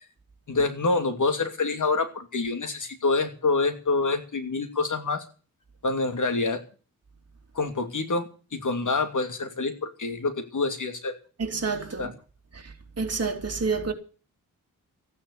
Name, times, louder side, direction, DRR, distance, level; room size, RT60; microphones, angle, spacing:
voice 1, 0.5-5.2 5.8-6.6 7.5-11.1 12.0-12.1, left 3 dB, 60° left, 2.7 m, -26 dB
voice 2, 11.4-12.1 13.0-13.9, right 4 dB, 45° right, 3.2 m, -28 dB
14.5 x 9.9 x 8.5 m
wide cardioid pair, 110°, 35 cm